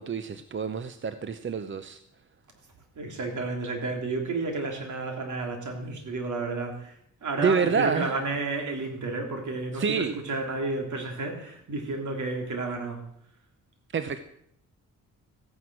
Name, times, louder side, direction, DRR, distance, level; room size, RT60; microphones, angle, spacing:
voice 1, 0.0-2.0 7.4-8.1 9.7-10.2 13.9-14.2, right 6 dB, 40° right, 0.8 m, -27 dB
voice 2, 3.0-7.0 7.2-13.0, right 3 dB, 65° right, 3.4 m, -31 dB
15.0 x 9.5 x 6.1 m
cardioid pair, 75°, 31 cm